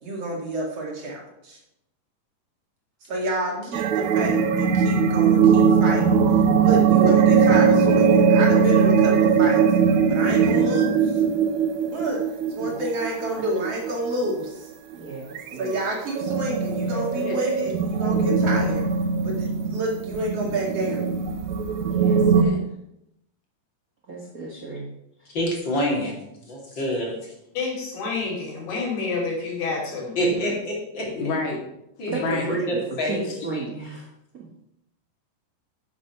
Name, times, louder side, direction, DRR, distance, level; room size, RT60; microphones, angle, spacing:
voice 1, 0.0-1.6 3.0-9.6 10.1-11.2 11.9-12.2 12.5-14.7 15.2-15.3 15.6-18.9 19.2-21.0, right 1 dB, 50° right, -2 dB, 3.0 m, -29 dB
sound 1, 3.7-14.3 14.9-15.0 15.3-15.5 15.9-22.4, right 6 dB, 70° right, 2.0 m, -20 dB
voice 2, 14.9-15.8 21.9-22.4 24.1-24.9 32.1-34.1 34.3-34.5, right 3 dB, 85° right, -1 dB, 0.7 m, -32 dB
voice 3, 21.9-22.6 30.2-30.6 31.0-31.6 32.0-32.6, left 2 dB, 60° left, 0 dB, 3.3 m, -31 dB
voice 4, 25.3-26.2 26.5-27.3 30.2-31.1 32.0-33.3, equal, 35° left, -3 dB, 3.4 m, -27 dB
voice 5, 27.5-30.2, left 4 dB, 90° left, -1 dB, 4.6 m, -28 dB
9.8 x 7.4 x 5.7 m, 0.82 s
omnidirectional pair, 3.8 m